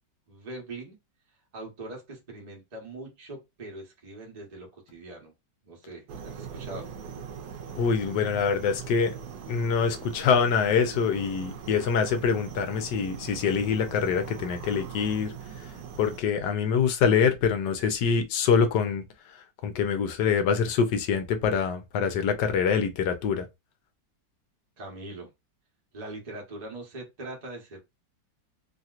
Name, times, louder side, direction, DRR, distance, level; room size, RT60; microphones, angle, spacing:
voice 1, 0.3-1.0 1.5-5.3 5.6-6.9 24.8-25.3 25.9-27.8, right 2 dB, 30° right, 0.9 m, -41 dB
sound 1, 6.1-16.2, right 7 dB, 70° right, 1.0 m, -41 dB
voice 2, 7.8-9.1 9.5-15.3 16.0-19.0 19.6-23.5, left 6 dB, 70° left, 1.2 m, -25 dB
3.2 x 2.8 x 2.4 m
omnidirectional pair, 2.1 m